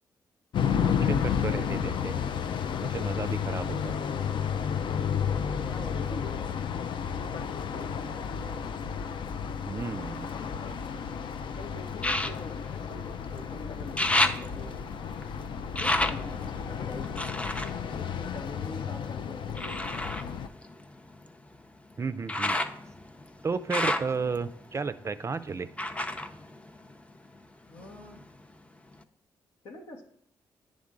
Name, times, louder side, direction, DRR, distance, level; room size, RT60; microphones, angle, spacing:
sound 1, 0.5-20.5, left 7 dB, 65° left, 0.4 m, -32 dB
voice 1, 0.8-2.1 2.8-4.0 9.7-10.3 22.0-22.6 23.4-25.7, right 4 dB, 35° right, 12 dB, 0.4 m, -33 dB
voice 2, 5.6-6.4 6.8-7.4 7.7-9.0 10.4-10.8 11.6-14.8 15.7-17.3 18.0-20.2 27.7-28.2 29.6-30.0, left 2 dB, 80° left, 2 dB, 1.2 m, -45 dB
sound 2, 9.8-11.1 12.0-13.5 13.7-18.9 19.5-27.4 27.7-28.5 29.0-29.1, left 1 dB, 15° left, 0.6 m, -33 dB
9.6 x 3.6 x 3.7 m, 0.67 s
supercardioid pair, 55°, 9 cm